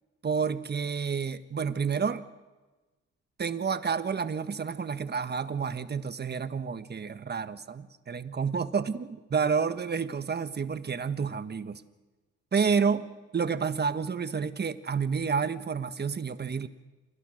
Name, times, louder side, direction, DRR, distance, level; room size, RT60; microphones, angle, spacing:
voice 1, 0.2-2.3 3.4-11.8 12.5-13.1 13.3-16.7, right 6 dB, 35° right, 11 dB, 1.4 m, -29 dB
28.5 x 23.0 x 6.5 m, 1.2 s
cardioid pair, 90°, 30 cm